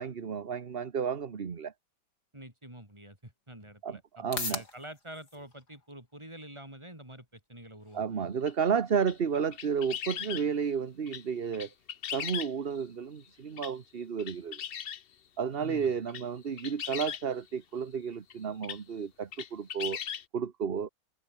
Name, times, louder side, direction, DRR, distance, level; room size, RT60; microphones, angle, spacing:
voice 1, 0.0-1.7 3.8-4.6 7.9-11.7 12.1-14.6 15.4-20.0 20.3-20.9, right 6 dB, 40° right, 1.2 m, -32 dB
voice 2, 2.3-8.3 15.6-15.9, right 1 dB, 15° right, 5.6 m, -47 dB
sound 1, 2.8-19.8, left 3 dB, 75° left, 4.6 m, -49 dB
sound 2, 8.5-8.6 9.0-10.5 11.1-11.2 11.5-12.8 13.6-13.7 14.2-15.0 15.9-16.2 16.6-17.2 18.3-18.4 18.6-18.8 19.3-20.2, left 9 dB, 50° left, 0.7 m, -38 dB
omnidirectional pair, 1.8 m